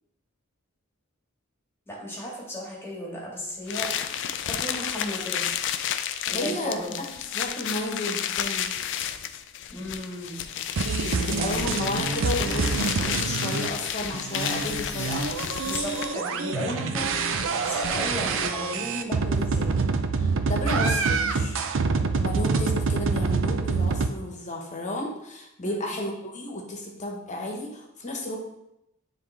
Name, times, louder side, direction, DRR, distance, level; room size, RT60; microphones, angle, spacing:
voice 1, 1.9-3.9 4.4-5.4 6.3-6.9 9.7-10.4 15.6-19.8 25.6-25.8, equal, 10° left, -4 dB, 1.7 m, -35 dB
sound 1, 3.7-16.3, left 9 dB, 60° left, 0.4 m, -31 dB
voice 2, 6.1-6.8 7.3-8.7 11.1-15.5 16.7-16.8 20.2-21.6 22.1-28.4, left 1 dB, 35° left, 0 dB, 1.2 m, -33 dB
sound 2, 10.8-13.7 14.1-24.1, right 4 dB, 65° right, 0.5 m, -26 dB
9.2 x 3.4 x 3.3 m, 0.85 s
head